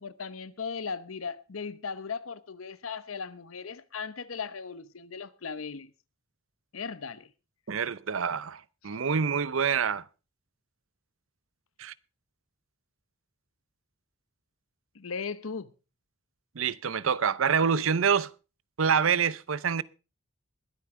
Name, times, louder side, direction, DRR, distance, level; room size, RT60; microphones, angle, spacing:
voice 1, 0.0-5.9 6.7-7.3 14.9-15.7, left 5 dB, 85° left, 0.9 m, -37 dB
voice 2, 7.7-10.0 11.8-11.9 16.6-18.3 18.8-19.8, right 6 dB, 75° right, 0.6 m, -26 dB
21.0 x 9.3 x 3.7 m
head